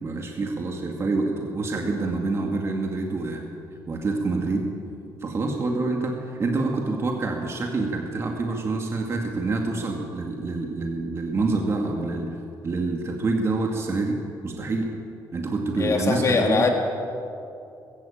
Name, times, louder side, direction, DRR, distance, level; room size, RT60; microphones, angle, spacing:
voice 1, 0.0-3.4 3.9-4.6 5.2-12.4 12.6-14.2 14.4-14.9 15.3-16.7, right 3 dB, 35° right, 1 dB, 2.1 m, -27 dB
voice 2, 15.8-16.7, left 4 dB, 40° left, 2 dB, 2.7 m, -22 dB
20.0 x 16.0 x 8.7 m, 2.6 s
cardioid pair, 140°, 8 cm